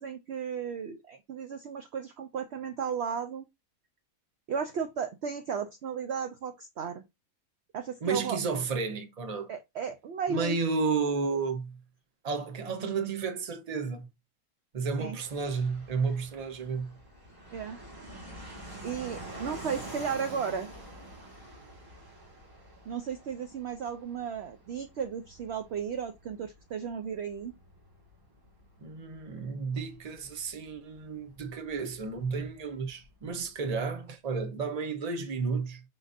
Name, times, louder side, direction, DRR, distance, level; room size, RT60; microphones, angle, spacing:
voice 1, 0.0-3.4 4.5-7.0 7.7-8.4 9.5-10.6 15.0-15.2 17.5-17.8 18.1-18.3 18.8-20.7 22.9-27.5, right 7 dB, 60° right, 0.7 m, -34 dB
voice 2, 8.0-9.5 10.3-11.8 12.2-14.1 14.7-17.0 28.8-35.8, right 4 dB, 35° right, 0.8 m, -32 dB
Fixed-wing aircraft airplane, 15.2-33.5, right 1 dB, 15° right, 1.5 m, -48 dB
5.2 x 3.9 x 2.5 m
omnidirectional pair, 1.5 m